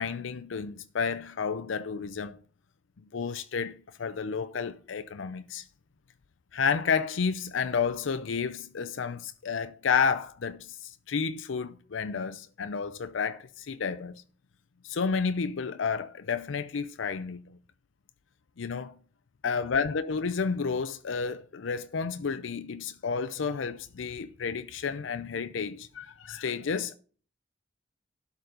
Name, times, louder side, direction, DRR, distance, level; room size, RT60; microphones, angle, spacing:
voice 1, 0.0-2.4 3.1-5.6 6.5-14.2 14.8-17.6 18.6-19.0 19.4-27.0, left 5 dB, 85° left, 0.5 m, -31 dB
12.0 x 4.1 x 6.7 m
head